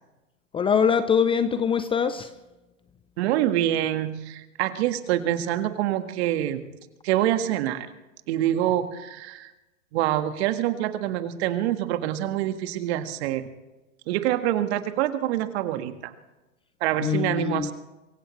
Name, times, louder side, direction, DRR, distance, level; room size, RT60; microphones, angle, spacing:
voice 1, 0.5-2.3 17.0-17.7, left 7 dB, 15° left, 12 dB, 0.6 m, -23 dB
voice 2, 3.2-6.6 7.0-7.9 8.3-9.5 9.9-13.5 14.1-16.1 16.8-17.7, right 12 dB, 50° right, 9 dB, 1.7 m, -26 dB
24.5 x 16.0 x 3.2 m, 1.0 s
hypercardioid pair, 120°, 40 cm